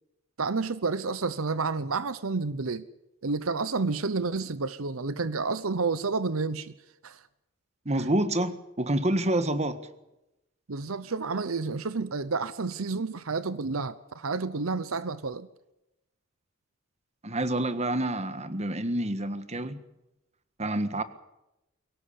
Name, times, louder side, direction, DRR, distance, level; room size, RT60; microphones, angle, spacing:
voice 1, 0.4-2.9 3.2-6.7 7.0-7.2 8.0-8.1 10.7-15.5, right 4 dB, 80° right, 0.9 m, -30 dB
voice 2, 7.8-9.8 17.2-19.8 20.6-21.0, right 1 dB, 30° right, 1.6 m, -28 dB
23.0 x 18.0 x 8.5 m
head